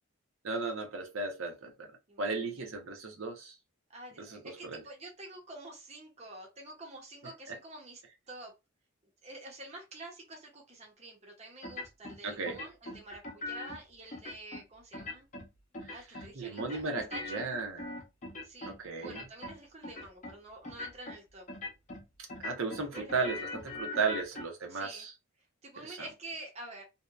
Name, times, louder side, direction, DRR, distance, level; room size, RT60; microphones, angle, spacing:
voice 1, 0.4-1.9 2.2-3.5 4.2-4.8 12.2-12.6 16.4-17.9 18.7-19.2 22.4-25.1 25.8-26.0, right 4 dB, 75° right, 0.7 m, -35 dB
voice 2, 3.9-8.0 8.3-8.5 9.2-15.3 15.9-17.5 18.4-21.5 22.9-23.3 24.7-25.1 25.6-26.8, right 2 dB, 30° right, 0.6 m, -48 dB
sound 1, 11.6-12.2 12.4-13.8 14.1-14.6 14.9-15.5 15.7-16.3 16.6-18.8 19.0-19.6 19.8-20.3 20.6-21.2 21.5-22.0 22.3-24.4, left 2 dB, 35° left, 0.6 m, -41 dB
2.8 x 2.1 x 2.3 m
head